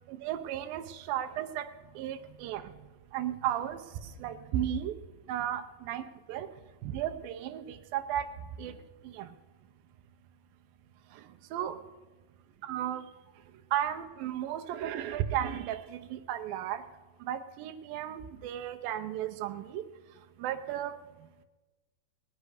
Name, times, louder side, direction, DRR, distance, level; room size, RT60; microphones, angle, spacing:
voice 1, 0.1-1.7 2.0-2.6 3.1-3.8 4.2-4.9 5.3-6.5 6.8-8.2 8.6-8.7 9.1-9.3 11.5-11.8 12.6-13.0 13.7-16.8 17.3-19.8 20.4-21.0, right 11 dB, 75° right, 7 dB, 2.3 m, -34 dB
21.0 x 9.4 x 4.9 m, 1.2 s
omnidirectional pair, 4.5 m